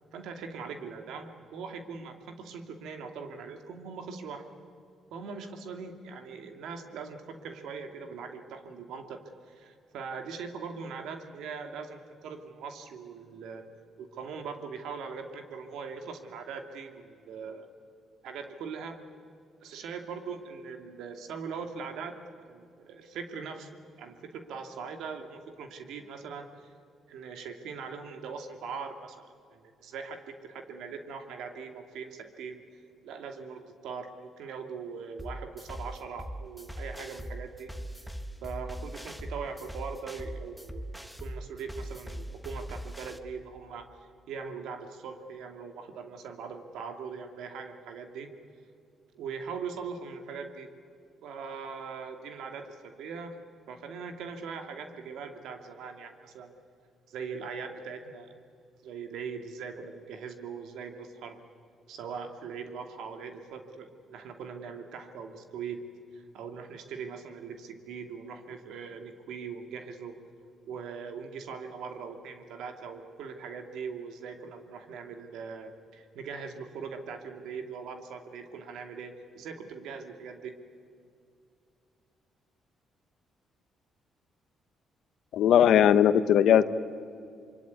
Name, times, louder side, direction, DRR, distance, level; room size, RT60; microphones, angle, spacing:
voice 1, 0.1-4.4 5.1-13.6 14.0-17.7 18.2-19.0 19.6-23.7 24.0-26.5 27.1-32.6 33.0-38.0 38.4-43.9 44.3-48.3 49.1-50.7 51.2-53.3 53.7-56.5 57.1-58.3 58.8-61.4 61.9-65.8 66.1-70.2 70.6-80.6, right 5 dB, 85° right, 6 dB, 2.4 m, -41 dB
sound 1, 35.2-43.2, equal, ahead, 1.5 m, -40 dB
voice 2, 85.3-86.6, left 9 dB, 75° left, 13 dB, 1.0 m, -19 dB
25.5 x 23.5 x 9.6 m, 2.4 s
cardioid pair, 90°, 0 cm